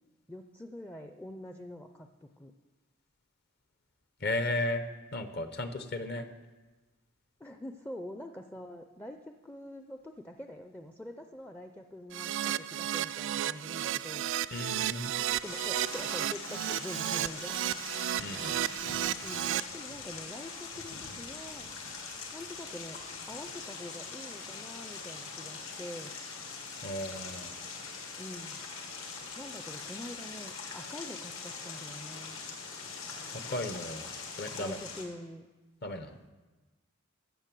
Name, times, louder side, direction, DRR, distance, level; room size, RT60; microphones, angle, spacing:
voice 1, 0.3-2.5 7.4-14.3 15.4-17.6 19.2-21.7 22.3-26.1 28.2-28.6 29.4-32.4 34.5-35.5, left 1 dB, 10° left, 5 dB, 0.4 m, -45 dB
voice 2, 4.2-4.8 5.1-6.3 14.5-15.1 18.2-18.6 26.8-27.5 33.3-34.1 34.4-34.8 35.8-36.2, left 1 dB, 50° left, 9 dB, 0.8 m, -35 dB
Keyboard (musical), 12.1-19.6, right 12 dB, 60° right, 0.3 m, -33 dB
sound 1, 15.4-35.1, left 4 dB, 75° left, 2.0 m, -42 dB
14.0 x 6.0 x 7.5 m, 1.2 s
head